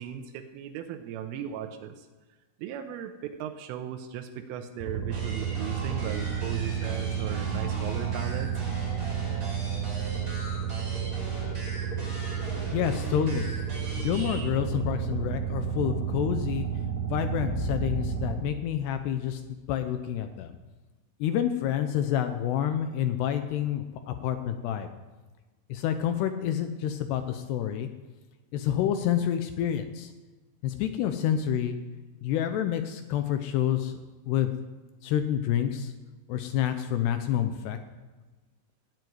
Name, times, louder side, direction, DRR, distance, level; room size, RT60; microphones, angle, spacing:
voice 1, 0.0-2.1 2.6-8.7, right 9 dB, 90° right, 5 dB, 3.4 m, -37 dB
sound 1, 4.8-18.4, right 8 dB, 10° left, 3.1 m, -31 dB
sound 2, 5.1-14.5, equal, 15° right, 5.4 m, -41 dB
voice 2, 12.7-13.5 14.0-16.7 17.1-20.6 21.2-24.9 25.7-27.9 28.5-30.1 30.6-31.8 32.2-34.0 34.3-34.5 35.0-35.9 36.3-37.8, left 10 dB, 80° left, 8 dB, 2.5 m, -28 dB
18.5 x 7.9 x 9.5 m, 1.2 s
omnidirectional pair, 5.7 m